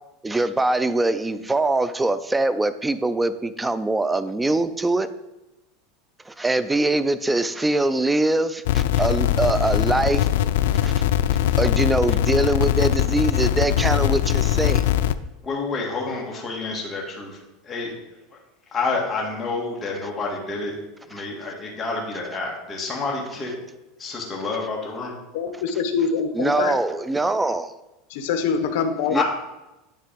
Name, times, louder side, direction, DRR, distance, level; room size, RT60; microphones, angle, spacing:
voice 1, 0.2-5.1 6.3-10.3 10.8-10.9 11.6-14.9 21.2-21.3 26.3-27.7 29.1-29.2, right 2 dB, 10° right, 13 dB, 0.3 m, -23 dB
sound 1, 8.6-15.1, left 12 dB, 85° left, 0.3 m, -21 dB
voice 2, 15.4-17.4 17.6-17.9 18.7-20.8 21.1-23.5 24.0-25.1 29.1-29.2, left 3 dB, 20° left, -2 dB, 1.6 m, -28 dB
voice 3, 25.3-26.8 28.1-29.2, left 6 dB, 70° left, 8 dB, 0.9 m, -24 dB
9.8 x 3.4 x 5.1 m, 1.0 s
supercardioid pair, 160°, 0 cm